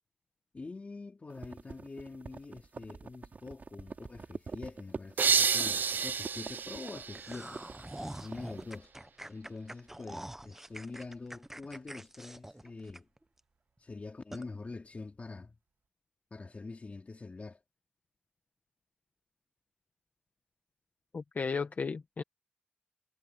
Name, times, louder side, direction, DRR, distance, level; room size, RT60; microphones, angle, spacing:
voice 1, 0.5-7.6 7.9-8.9 9.3-13.1 13.8-15.6 16.3-17.6, left 3 dB, 45° left, 3.2 m, -45 dB
sound 1, 1.3-8.7, right 4 dB, 65° right, 2.8 m, -45 dB
sound 2, 5.2-8.0, right 6 dB, 85° right, 0.5 m, -30 dB
sound 3, 7.1-13.4 13.8-13.9 14.3-14.5, right 1 dB, 10° right, 0.7 m, -45 dB
voice 2, 21.1-22.2, left 5 dB, 65° left, 1.1 m, -34 dB
wide cardioid pair, 95°, 3 cm